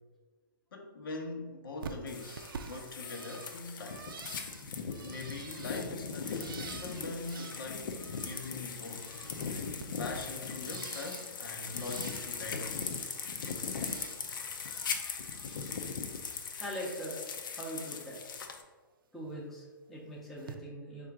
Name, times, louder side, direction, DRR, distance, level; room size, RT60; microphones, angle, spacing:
voice 1, 0.7-4.0 5.0-7.9 8.2-9.1 10.0-12.9, left 3 dB, 85° left, 2 dB, 0.8 m, -42 dB
Bird, 1.8-8.6 8.9-11.4 11.7-12.6 12.9-14.2 14.5-15.8 16.1-17.2 17.5-18.0 19.3-19.4 20.4-20.5, right 6 dB, 80° right, 0.4 m, -49 dB
sound 1, 2.1-18.6, left 5 dB, 70° left, 0.5 m, -39 dB
voice 2, 16.6-17.2 17.5-18.2 19.1-21.1, equal, ahead, -6 dB, 0.5 m, -41 dB
3.7 x 2.5 x 4.5 m, 1.3 s
hypercardioid pair, 165°, 11 cm